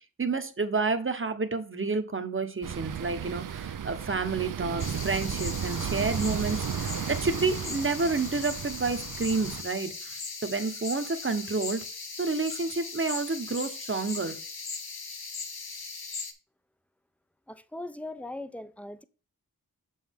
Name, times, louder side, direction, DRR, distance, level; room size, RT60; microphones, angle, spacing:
voice 1, 0.0-11.8 12.2-14.4, right 4 dB, 35° right, 1.0 m, -30 dB
sound 1, 2.6-9.6, right 8 dB, 60° right, 0.5 m, -34 dB
sound 2, 4.8-16.3, left 4 dB, 80° left, 1.2 m, -39 dB
voice 2, 17.5-19.0, left 2 dB, 5° left, 0.5 m, -39 dB
7.0 x 5.5 x 3.5 m
wide cardioid pair, 70°, 37 cm